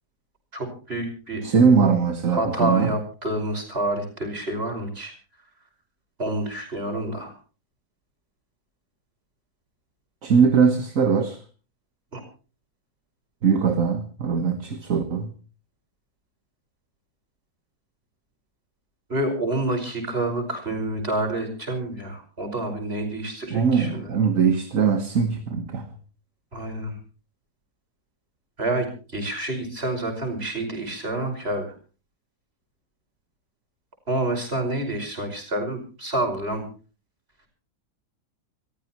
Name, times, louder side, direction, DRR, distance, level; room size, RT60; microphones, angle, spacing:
voice 1, 0.5-1.4 2.3-5.1 6.2-7.3 12.1-12.2 19.1-24.2 26.5-27.0 28.6-28.9 29.1-31.7 34.1-36.6, right 1 dB, 35° right, 5.8 m, -28 dB
voice 2, 1.4-2.9 10.2-11.4 13.4-15.3 23.5-25.9, right 6 dB, 55° right, 1.8 m, -21 dB
27.5 x 15.0 x 3.0 m
omnidirectional pair, 1.7 m